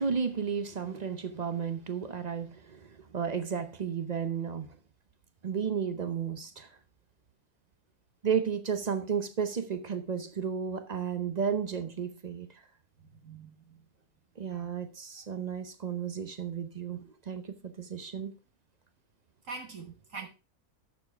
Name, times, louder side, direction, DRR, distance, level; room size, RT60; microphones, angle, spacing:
voice 1, 0.0-4.8 5.4-6.7 8.2-12.6 14.4-18.4 20.1-20.2, right 7 dB, 45° right, 0.6 m, -33 dB
voice 2, 13.2-13.5 14.5-14.7 19.5-20.3, right 4 dB, 60° right, 1.6 m, -43 dB
11.0 x 6.8 x 3.4 m
omnidirectional pair, 1.6 m